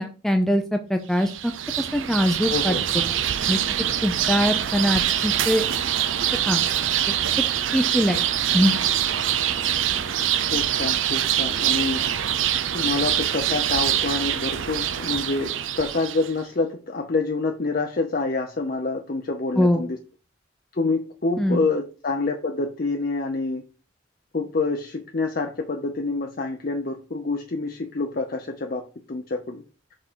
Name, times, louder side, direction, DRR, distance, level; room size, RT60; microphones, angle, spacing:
voice 1, 0.0-1.5 1.8-2.8 3.5-3.6 4.0-5.7 6.5-6.6 7.1-7.2 7.7-8.2 8.5-8.7 19.6-19.8 21.4-21.6, equal, ahead, 0.5 m, -22 dB
sound 1, 1.2-16.3, right 10 dB, 90° right, 0.6 m, -24 dB
voice 2, 2.5-2.8 10.5-12.0 12.7-20.0 20.7-23.6 24.3-29.6, left 3 dB, 50° left, 0.6 m, -27 dB
6.0 x 3.8 x 4.4 m
head